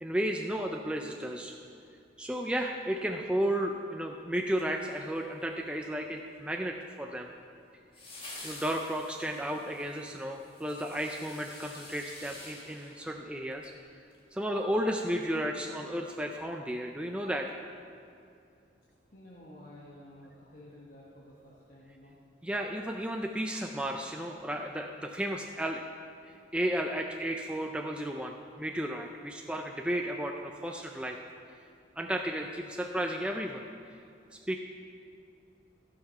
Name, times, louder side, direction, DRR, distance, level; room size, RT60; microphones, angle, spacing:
voice 1, 0.0-1.5 2.2-7.3 8.4-13.7 14.3-17.5 22.4-25.8 26.3-31.2 32.0-33.6 34.3-34.6, equal, 5° right, 2 dB, 0.4 m, -33 dB
sound 1, 4.5-5.4 7.9-13.8 14.1-14.2, left 2 dB, 30° left, 1.7 m, -49 dB
voice 2, 19.1-22.1 32.0-32.2, left 1 dB, 45° left, -6 dB, 1.3 m, -52 dB
15.0 x 5.9 x 5.7 m, 2.5 s
head